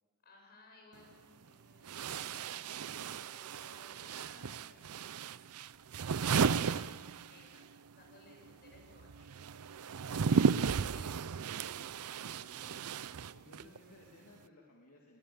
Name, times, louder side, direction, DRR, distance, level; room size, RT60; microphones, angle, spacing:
voice 1, 0.2-5.2 5.9-7.6 8.0-9.3 9.8-11.3, left 3 dB, 45° left, 0 dB, 7.1 m, -60 dB
sound 1, 0.9-1.0 1.8-7.7 7.9-13.8, right 6 dB, 90° right, 0.5 m, -34 dB
voice 2, 12.0-15.2, left 1 dB, 70° left, -1 dB, 2.8 m, -60 dB
22.0 x 20.0 x 7.1 m, 1.5 s
head